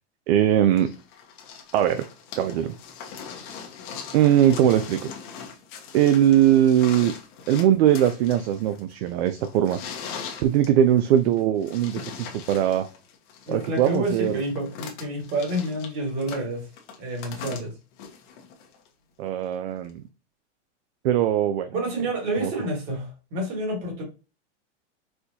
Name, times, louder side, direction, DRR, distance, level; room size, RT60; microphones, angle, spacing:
voice 1, 0.3-0.9 1.7-2.0 2.4-2.7 4.1-5.1 5.9-7.1 7.5-9.8 10.4-12.9 13.5-14.4 19.2-20.0 21.0-21.7 22.4-22.5, right 11 dB, 60° right, 8 dB, 0.5 m, -20 dB
sound 1, 0.8-18.9 19.9-20.0, left 6 dB, 45° left, 0.9 m, -41 dB
voice 2, 13.5-16.6 17.0-17.7 21.7-24.0, right 1 dB, 40° right, 1 dB, 1.6 m, -29 dB
4.3 x 2.2 x 2.7 m, 0.32 s
supercardioid pair, 145°, 36 cm